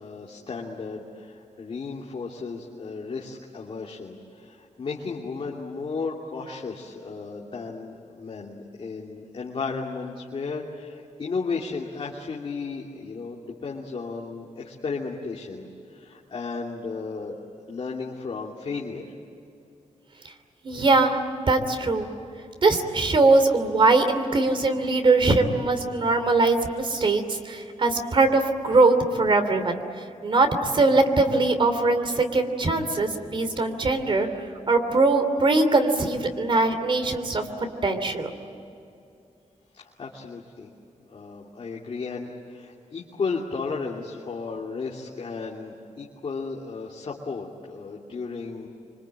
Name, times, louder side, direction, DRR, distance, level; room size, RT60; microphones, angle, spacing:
voice 1, 0.0-17.3 17.7-19.1 39.7-40.7 41.1-48.7, left 4 dB, 50° left, -2 dB, 2.7 m, -34 dB
voice 2, 20.6-21.2 21.5-22.1 22.6-29.8 30.2-38.3, right 3 dB, 40° right, 7 dB, 3.0 m, -21 dB
26.0 x 25.0 x 8.9 m, 2.6 s
wide cardioid pair, 155°, 13 cm